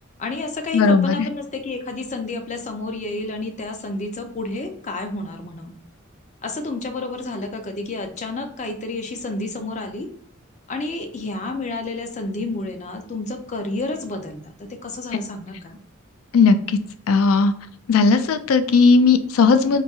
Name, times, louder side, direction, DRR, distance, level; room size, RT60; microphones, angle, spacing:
voice 1, 0.2-5.7 6.4-10.1 10.7-15.8, left 2 dB, 35° left, 5 dB, 0.5 m, -30 dB
voice 2, 0.7-1.3 16.3-16.8 17.1-17.5 17.9-19.8, left 4 dB, 90° left, 10 dB, 0.4 m, -16 dB
3.9 x 2.7 x 2.4 m, 0.62 s
head